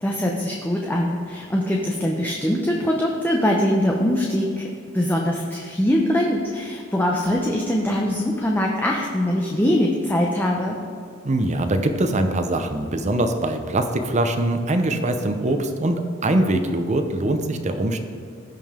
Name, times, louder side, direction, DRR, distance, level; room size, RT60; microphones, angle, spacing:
voice 1, 0.0-4.7 4.9-10.8, left 1 dB, 10° left, -1 dB, 0.7 m, -22 dB
voice 2, 11.2-18.0, right 1 dB, 35° right, 7 dB, 0.7 m, -22 dB
16.0 x 5.4 x 3.7 m, 2.4 s
head